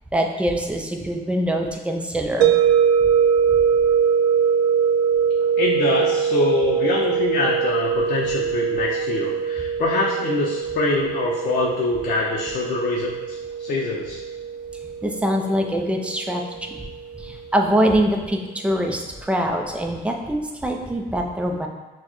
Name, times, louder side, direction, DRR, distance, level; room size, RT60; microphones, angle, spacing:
voice 1, 0.1-2.5 15.0-16.9 17.2-21.7, equal, 5° right, 2 dB, 0.5 m, -23 dB
sound 1, 2.4-17.3, right 7 dB, 80° right, 0.4 m, -22 dB
voice 2, 5.6-14.2, left 3 dB, 55° left, -3 dB, 0.6 m, -24 dB
6.1 x 2.2 x 3.0 m, 1.2 s
cardioid pair, 110°, 17 cm